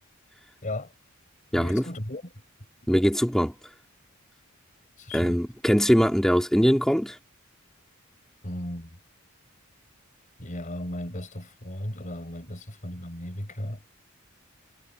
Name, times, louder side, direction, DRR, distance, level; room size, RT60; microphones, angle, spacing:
voice 1, 0.6-0.9 1.5-2.2 5.0-5.4 8.4-9.0 10.4-13.9, left 1 dB, 35° left, 4.4 m, -35 dB
voice 2, 1.5-1.9 2.9-3.7 5.1-7.2, equal, ahead, 2.3 m, -22 dB
head